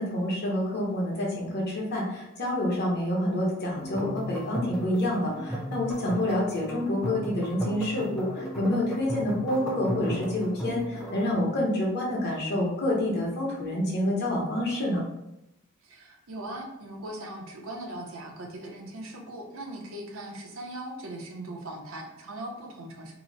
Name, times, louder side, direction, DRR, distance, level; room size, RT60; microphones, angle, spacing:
voice 1, 0.0-15.0, left 1 dB, 55° left, -3 dB, 0.9 m, -28 dB
sound 1, 3.8-11.3, equal, ahead, 0.5 m, -35 dB
voice 2, 15.8-23.1, right 1 dB, 80° right, 1 dB, 0.7 m, -39 dB
2.9 x 2.1 x 3.8 m, 0.86 s
head